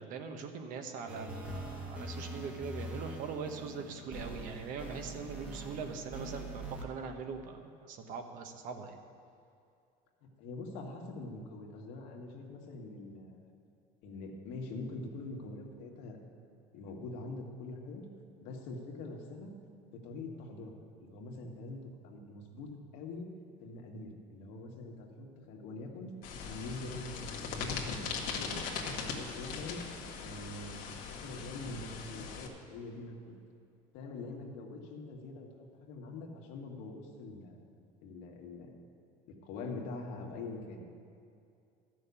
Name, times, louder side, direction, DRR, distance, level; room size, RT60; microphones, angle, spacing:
voice 1, 0.0-9.0, right 5 dB, 60° right, 5 dB, 1.2 m, -42 dB
sound 1, 1.1-6.8, right 1 dB, 10° right, 1.3 m, -43 dB
voice 2, 10.2-13.4 14.0-16.2 16.7-18.1 18.4-19.5 19.9-20.7 21.0-23.3 23.6-26.1 26.5-28.6 29.0-29.8 30.2-33.3 33.9-35.5 35.8-37.7 38.0-38.7 39.3-40.8, left 2 dB, 85° left, 0 dB, 1.9 m, -44 dB
sound 2, 26.2-32.5, left 5 dB, 65° left, 1.5 m, -40 dB
12.5 x 6.4 x 8.2 m, 2.5 s
cardioid pair, 145°, 16 cm